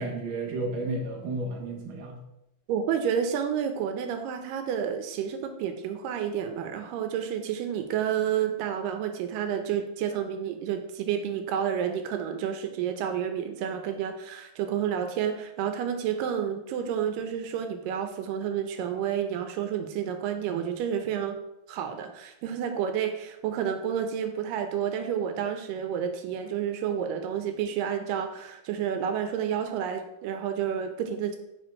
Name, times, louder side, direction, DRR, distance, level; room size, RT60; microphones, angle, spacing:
voice 1, 0.0-2.2, right 2 dB, 60° right, 0 dB, 1.4 m, -32 dB
voice 2, 2.7-21.4 21.7-31.4, right 8 dB, 90° right, 6 dB, 2.4 m, -30 dB
5.3 x 5.1 x 4.2 m, 0.84 s
omnidirectional pair, 3.8 m